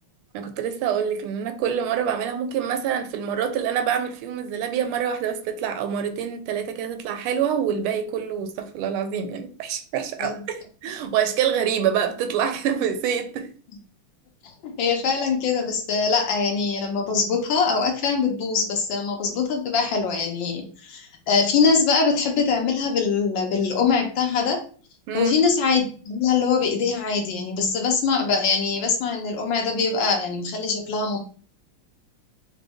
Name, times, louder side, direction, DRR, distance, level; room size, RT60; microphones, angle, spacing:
voice 1, 0.3-13.5 25.1-25.3, right 8 dB, 80° right, 1.4 m, -26 dB
voice 2, 14.6-24.6 25.1-31.2, left 5 dB, 70° left, 1.3 m, -23 dB
4.9 x 2.1 x 3.4 m
omnidirectional pair, 2.4 m